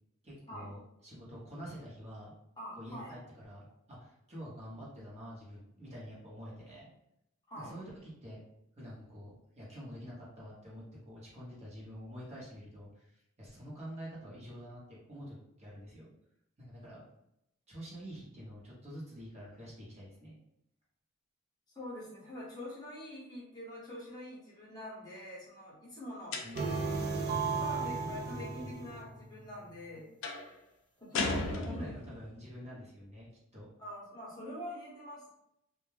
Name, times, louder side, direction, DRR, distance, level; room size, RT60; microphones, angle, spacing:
voice 1, 0.2-2.3 2.8-6.9 7.6-8.4 8.8-16.1 16.6-17.0 17.7-20.3 26.4-27.3 28.0-28.7 31.3-33.3 33.5-33.7, equal, 30° right, -6 dB, 0.8 m, -47 dB
voice 2, 2.6-3.2 7.5-7.8 21.7-27.0 27.6-30.1 31.0-32.0 33.8-35.3, left 1 dB, 20° left, -7 dB, 0.8 m, -45 dB
sound 1, 26.3-26.9 30.2-30.5 31.1-32.2, left 3 dB, 60° left, 0.4 m, -35 dB
sound 2, 26.5-29.7, right 4 dB, 50° right, 0.4 m, -35 dB
2.2 x 2.1 x 3.1 m, 0.80 s
head